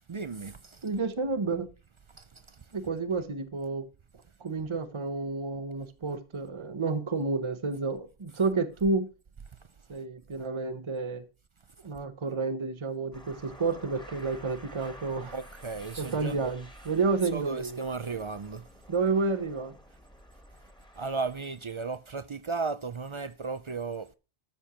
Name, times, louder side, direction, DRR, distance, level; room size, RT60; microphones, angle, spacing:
voice 1, 0.1-0.8 2.2-2.3 15.3-16.5 17.3-18.6 21.0-24.1, right 4 dB, 45° right, 0.4 m, -35 dB
voice 2, 0.8-1.7 2.7-3.9 4.4-9.1 9.9-11.2 11.8-15.4 16.0-17.8 18.9-19.8, right 4 dB, 30° right, 0.8 m, -30 dB
sound 1, 13.1-21.7, equal, 5° left, 1.6 m, -51 dB
13.0 x 4.4 x 5.8 m
omnidirectional pair, 1.1 m